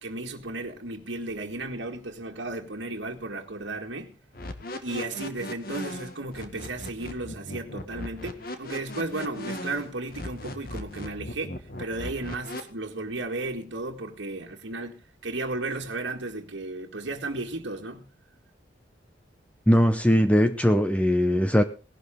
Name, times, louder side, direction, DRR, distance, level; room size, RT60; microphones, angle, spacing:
voice 1, 0.0-4.2 4.8-18.1, right 2 dB, 75° right, 1.8 m, -34 dB
sound 1, 4.3-12.6, left 1 dB, 50° left, 1.9 m, -37 dB
voice 2, 19.7-21.6, equal, 5° left, 0.7 m, -20 dB
17.5 x 12.0 x 3.7 m
head